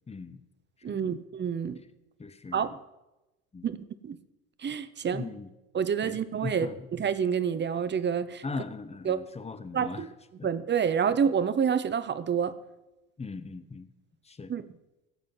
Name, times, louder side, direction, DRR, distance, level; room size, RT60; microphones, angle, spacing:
voice 1, 0.1-0.4 0.9-1.2 2.2-2.8 3.5-3.7 5.1-5.5 6.0-6.9 8.4-10.1 10.4-10.5 11.0-11.1 13.2-13.9 14.3-14.5, left 4 dB, 15° left, 13 dB, 0.9 m, -39 dB
voice 2, 0.8-1.8 2.5-2.7 3.6-3.8 4.0-4.2 4.6-5.2 5.7-8.4 9.0-9.2 9.7-10.1 10.4-12.6 14.5-14.6, right 7 dB, 25° right, 14 dB, 0.8 m, -28 dB
16.0 x 7.5 x 5.6 m, 0.99 s
hypercardioid pair, 75°, 44 cm